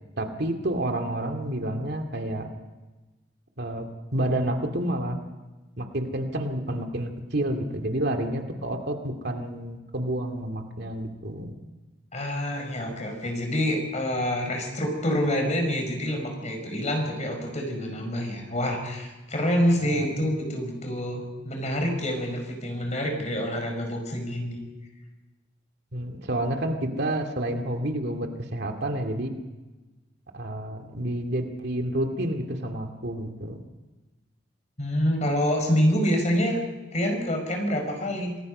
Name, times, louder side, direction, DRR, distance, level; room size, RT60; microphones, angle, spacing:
voice 1, 0.2-2.5 3.6-5.2 5.8-11.5 19.8-20.1 25.9-29.3 30.3-33.6, right 1 dB, 60° right, 4 dB, 2.2 m, -29 dB
voice 2, 12.1-24.6 34.8-36.6 36.9-38.4, equal, 40° left, 3 dB, 5.4 m, -27 dB
27.5 x 19.5 x 5.4 m, 1.2 s
head